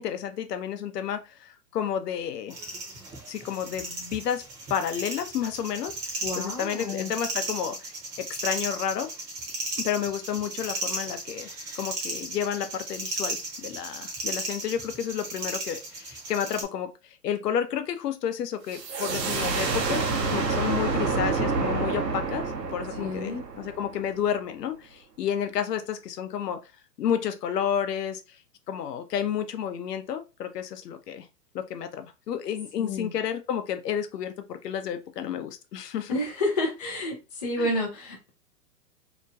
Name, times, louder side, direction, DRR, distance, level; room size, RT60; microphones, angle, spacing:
voice 1, 0.0-2.6 3.3-4.4 4.7-9.1 9.8-11.5 11.8-20.0 20.3-22.5 22.7-26.6 27.0-28.4 28.7-31.3 31.5-36.2 37.6-37.7, left 9 dB, 70° left, 0.7 m, -31 dB
sound 1, 2.5-16.6, right 2 dB, 20° right, 0.8 m, -35 dB
voice 2, 6.2-7.1 23.0-23.4 32.8-33.1 36.1-38.3, left 1 dB, 30° left, 0.3 m, -30 dB
sound 2, 18.7-24.2, right 4 dB, 75° right, 0.9 m, -28 dB
2.9 x 2.2 x 2.6 m
hypercardioid pair, 130°, 49 cm